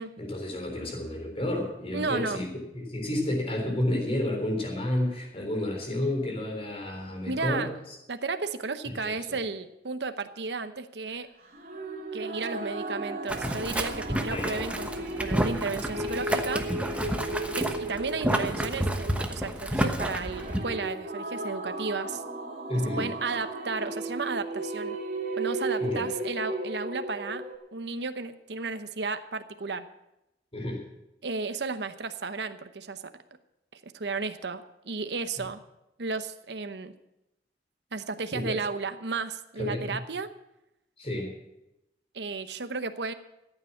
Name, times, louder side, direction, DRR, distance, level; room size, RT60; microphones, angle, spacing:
voice 1, 0.2-2.5 2.7-8.0 9.0-9.4 14.3-14.6 22.7-23.1 25.8-26.1 30.5-30.8 38.3-38.6 39.6-40.0 41.0-41.3, left 1 dB, 35° left, 2 dB, 3.7 m, -31 dB
voice 2, 1.9-2.4 7.3-7.7 8.1-11.3 12.1-16.7 17.6-22.2 23.0-25.0 25.4-27.4 27.7-29.9 31.2-33.0 33.8-35.6 36.0-36.9 37.9-40.3 42.1-43.1, right 4 dB, 75° right, 10 dB, 0.9 m, -33 dB
sound 1, 11.5-27.5, right 2 dB, 55° right, 3.3 m, -35 dB
Boiling, 13.3-20.6, right 1 dB, 5° right, 1.1 m, -30 dB
14.0 x 8.9 x 7.3 m, 0.90 s
head